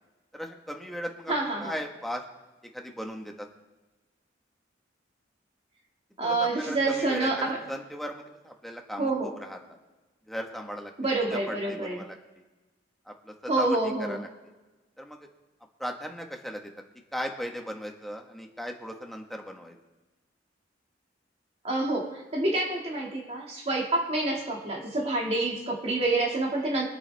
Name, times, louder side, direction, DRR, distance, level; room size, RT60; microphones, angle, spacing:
voice 1, 0.3-1.3 1.6-2.2 2.7-3.5 6.2-9.8 10.3-10.9 11.3-12.4 13.1-14.3 15.0-15.2 15.8-16.7 17.1-19.8, equal, ahead, 2 dB, 1.5 m, -37 dB
voice 2, 1.3-1.7 6.2-7.6 9.0-9.3 11.0-12.0 13.5-14.2 21.6-26.8, right 2 dB, 35° right, -2 dB, 2.2 m, -27 dB
24.0 x 8.5 x 3.5 m, 1.2 s
head